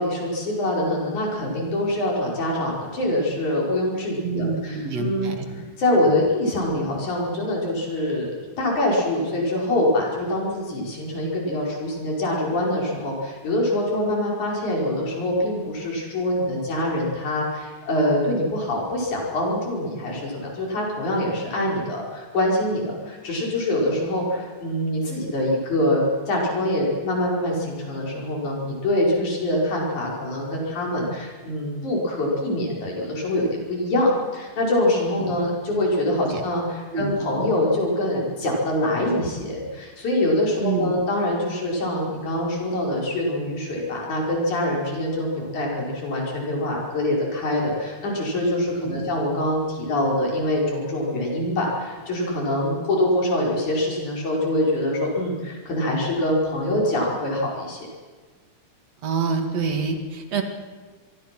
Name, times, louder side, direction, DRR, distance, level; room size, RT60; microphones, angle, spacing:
voice 1, 0.0-5.3 5.8-57.9, left 1 dB, 90° left, -2 dB, 6.6 m, -24 dB
voice 2, 4.2-5.4 6.1-6.3 35.2-35.3 36.3-36.4 36.9-37.2 40.6-41.0 48.8-49.0 59.0-60.4, right 5 dB, 65° right, 5 dB, 3.2 m, -27 dB
26.0 x 22.5 x 6.2 m, 1.4 s
omnidirectional pair, 3.3 m